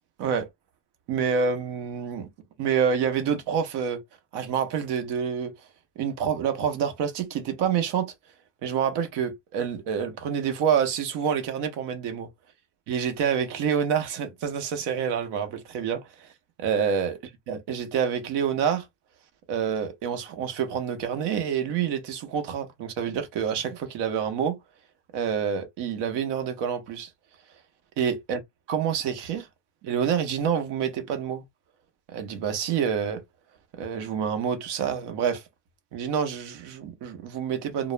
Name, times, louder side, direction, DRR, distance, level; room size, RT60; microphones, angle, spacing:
voice 1, 1.1-2.3 2.6-4.0 4.3-5.5 6.0-8.1 8.6-12.3 12.9-16.3 16.6-17.2 17.5-18.9 19.5-24.6 25.1-27.1 28.0-28.4 28.7-29.5 29.8-31.4 32.1-33.2 33.7-35.4 35.9-37.9, right 7 dB, 55° right, 0.8 m, -27 dB
2.2 x 2.0 x 3.2 m
cardioid pair, 130°, 48 cm